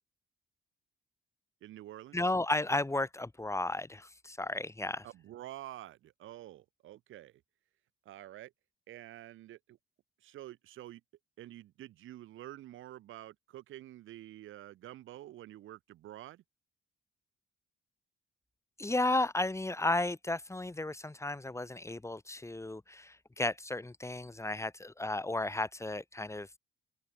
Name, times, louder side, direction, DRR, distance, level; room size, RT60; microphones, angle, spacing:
voice 1, 1.6-2.2 5.0-7.4 8.0-8.5 8.9-9.8 10.2-11.0 11.4-16.4, right 14 dB, 85° right, 6.6 m, -48 dB
voice 2, 2.1-5.0 18.8-26.6, left 2 dB, 15° left, 4.8 m, -34 dB
open air
cardioid pair, 90°, 20 cm